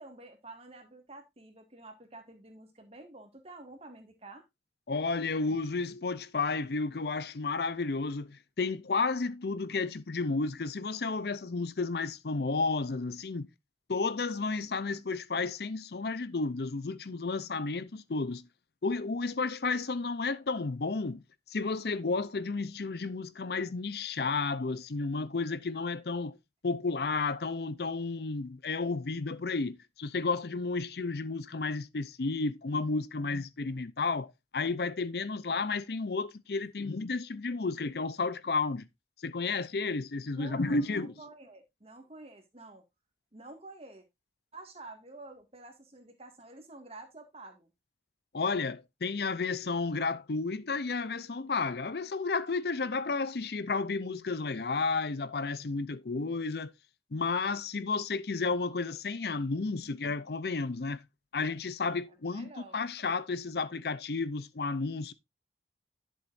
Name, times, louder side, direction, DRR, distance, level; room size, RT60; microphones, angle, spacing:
voice 1, 0.0-4.4 40.3-42.8 43.3-44.0 44.5-47.7 62.1-62.8, right 2 dB, 35° right, 2.0 m, -49 dB
voice 2, 4.9-13.5 13.9-18.5 18.8-21.2 21.5-26.4 26.6-38.9 39.2-41.2 48.3-56.7 57.1-61.0 61.3-65.1, left 4 dB, 60° left, 0.6 m, -32 dB
11.0 x 7.3 x 2.6 m
head